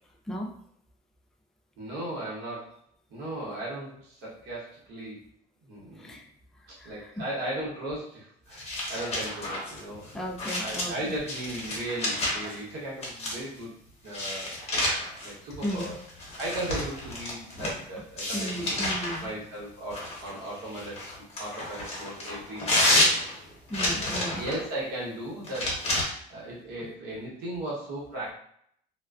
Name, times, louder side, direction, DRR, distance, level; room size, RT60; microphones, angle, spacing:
voice 1, 1.8-2.8 3.1-5.2 5.6-6.2 6.7-10.3 10.5-13.7 14.0-14.6 15.2-16.0 16.4-18.8 19.2-21.0 21.4-23.0 24.3-28.3, right 1 dB, 90° right, -6 dB, 1.0 m, -37 dB
voice 2, 6.8-7.2 10.1-11.1 15.6-15.9 18.3-19.3 23.7-24.5, equal, 5° left, 0 dB, 0.3 m, -35 dB
sound 1, 8.5-12.6 13.0-13.6 14.1-17.8 18.2-19.2 19.9-24.6 25.4-26.0, left 1 dB, 40° left, 0.9 m, -30 dB
2.4 x 2.3 x 2.2 m, 0.66 s
cardioid pair, 110°, 17 cm